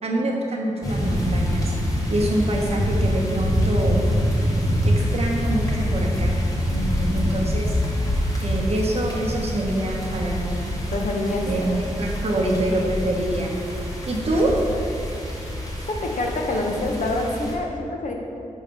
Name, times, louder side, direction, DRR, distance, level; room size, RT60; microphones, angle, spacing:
voice 1, 0.0-1.7 2.1-4.0 4.8-6.3 7.1-7.8 8.4-10.7 11.4-11.6 12.0-13.5 14.1-14.5, right 1 dB, 50° right, -1 dB, 0.8 m, -25 dB
sound 1, 0.8-17.5, equal, 25° left, 1.1 m, -25 dB
voice 2, 6.7-7.3 10.9-11.4 11.7-11.8 14.3-14.4 16.0-18.1, left 2 dB, 70° left, 1 dB, 0.7 m, -26 dB
5.5 x 3.3 x 5.2 m, 2.7 s
wide cardioid pair, 95°, 13 cm